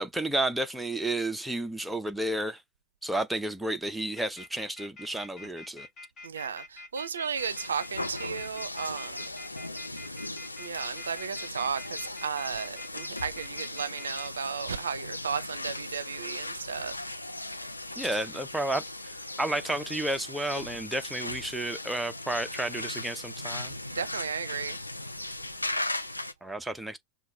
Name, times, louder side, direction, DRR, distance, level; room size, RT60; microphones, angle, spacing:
voice 1, 0.0-2.6 3.0-5.9 18.0-18.8 19.4-23.7 26.4-27.0, right 1 dB, 5° right, 0.6 m, -31 dB
sound 1, 4.1-14.3, left 2 dB, 25° left, 1.3 m, -46 dB
voice 2, 6.2-9.3 10.6-16.9 23.9-24.8, right 6 dB, 70° right, 0.5 m, -34 dB
sound 2, 7.3-26.3, left 2 dB, 85° left, 0.5 m, -38 dB
5.6 x 2.3 x 3.2 m
figure-of-eight pair, 90°, 0 cm